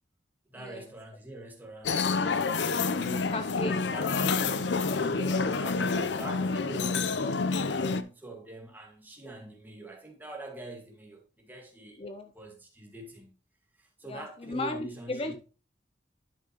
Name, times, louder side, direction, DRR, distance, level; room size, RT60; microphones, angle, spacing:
voice 1, 0.5-3.3 3.6-12.0 12.3-13.3 13.8-15.3, right 1 dB, 10° right, 1.8 m, -44 dB
sound 1, 1.8-8.0, left 4 dB, 80° left, 0.6 m, -28 dB
voice 2, 3.3-3.8 12.0-12.3 14.1-15.3, left 2 dB, 30° left, 0.5 m, -35 dB
10.5 x 6.0 x 3.0 m
head